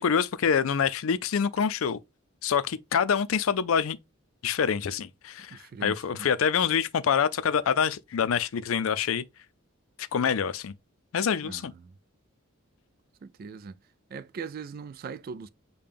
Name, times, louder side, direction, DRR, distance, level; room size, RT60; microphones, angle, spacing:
voice 1, 0.0-2.0 2.4-4.0 4.4-9.2 10.0-10.7 11.1-11.7, left 7 dB, 75° left, 0.4 m, -26 dB
voice 2, 5.5-6.3 11.4-11.9 13.2-13.8 14.1-15.5, right 5 dB, 45° right, 0.3 m, -40 dB
6.7 x 2.2 x 3.5 m
head